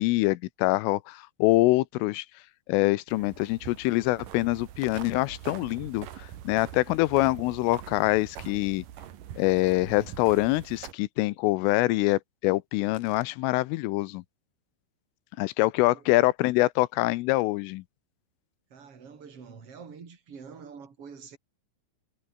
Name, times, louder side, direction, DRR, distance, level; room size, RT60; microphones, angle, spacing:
voice 1, 0.0-2.2 2.7-8.8 9.4-14.2 15.4-17.8, left 20 dB, 80° left, 3.3 m, -25 dB
sound 1, 3.1-10.9, right 11 dB, 60° right, 2.4 m, -43 dB
voice 2, 18.7-21.4, right 6 dB, 30° right, 4.1 m, -46 dB
omnidirectional pair, 5.9 m